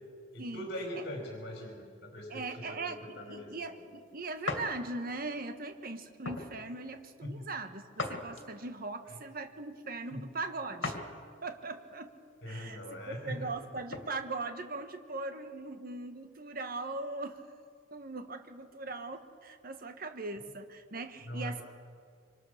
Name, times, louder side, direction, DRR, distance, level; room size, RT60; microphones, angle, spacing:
voice 1, 0.3-3.5 7.2-7.5 9.1-9.2 10.1-10.3 12.4-13.5 21.3-21.6, equal, 60° left, 0 dB, 4.7 m, -41 dB
voice 2, 2.3-11.0 11.4-12.1 12.5-12.8 13.1-17.4 17.9-21.6, right 3 dB, 50° right, 7 dB, 1.5 m, -40 dB
sound 1, 4.5-4.7 5.3-5.5 6.2-6.5 8.0-8.7 10.8-11.1 11.6-11.7 13.4-14.1, left 3 dB, 80° left, 2.6 m, -37 dB
26.5 x 24.5 x 6.6 m, 2.2 s
head